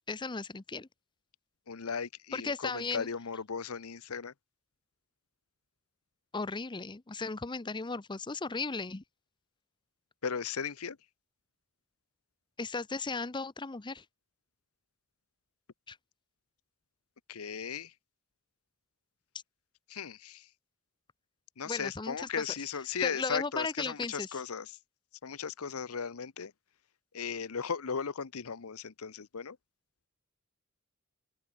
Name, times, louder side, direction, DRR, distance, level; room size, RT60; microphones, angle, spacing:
voice 1, 0.1-0.9 2.3-3.1 6.3-9.0 12.6-14.0 15.9-16.0 21.6-22.4 23.0-24.4, left 4 dB, 20° left, 0.7 m, -36 dB
voice 2, 1.7-4.3 10.2-11.0 17.3-17.9 19.9-20.5 21.6-24.7 25.2-26.5 27.1-29.6, left 6 dB, 80° left, 0.8 m, -36 dB
open air
head